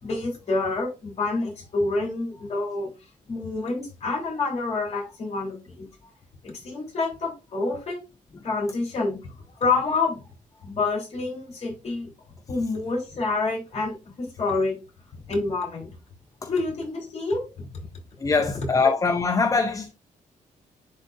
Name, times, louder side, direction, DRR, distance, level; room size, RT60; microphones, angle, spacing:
voice 1, 0.0-2.9 3.3-5.9 6.4-8.0 8.4-9.3 9.6-10.3 10.6-12.1 12.5-14.8 15.3-15.9 16.5-17.7, left 3 dB, 50° left, 3.5 m, -28 dB
voice 2, 18.2-19.9, left 4 dB, 25° left, 0.5 m, -23 dB
10.5 x 3.6 x 2.5 m
wide cardioid pair, 135°, 14 cm